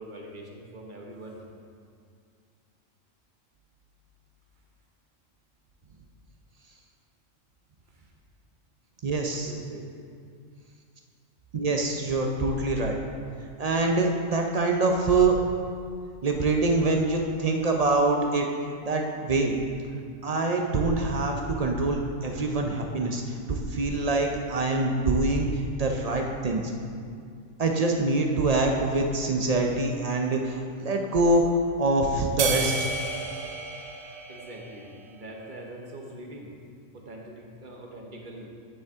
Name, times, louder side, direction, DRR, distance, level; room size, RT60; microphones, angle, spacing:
voice 1, 0.0-1.4 7.9-8.1 9.2-9.9 34.3-36.5 36.9-38.5, right 1 dB, 40° right, 0 dB, 1.0 m, -43 dB
voice 2, 9.0-9.5 11.5-13.0 13.6-15.4 16.2-18.5 18.8-19.6 20.2-26.7 27.6-32.7, right 2 dB, 55° right, 2 dB, 0.4 m, -25 dB
sound 1, 32.4-35.0, right 4 dB, 85° right, 1.1 m, -31 dB
11.0 x 5.4 x 3.5 m, 2.3 s
omnidirectional pair, 1.4 m